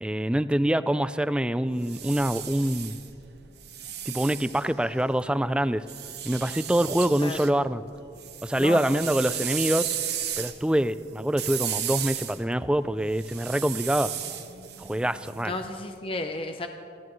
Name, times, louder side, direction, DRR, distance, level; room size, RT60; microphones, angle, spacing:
voice 1, 0.0-2.9 4.1-5.8 6.2-7.8 8.4-9.9 10.4-14.1 14.8-15.5, right 1 dB, 5° right, 14 dB, 0.3 m, -25 dB
sound 1, 1.7-5.2 5.9-7.5 7.9-15.8, right 10 dB, 60° right, 1.2 m, -35 dB
voice 2, 8.6-9.0 15.4-16.7, left 2 dB, 30° left, 5 dB, 0.7 m, -33 dB
25.0 x 16.5 x 3.1 m, 2.7 s
head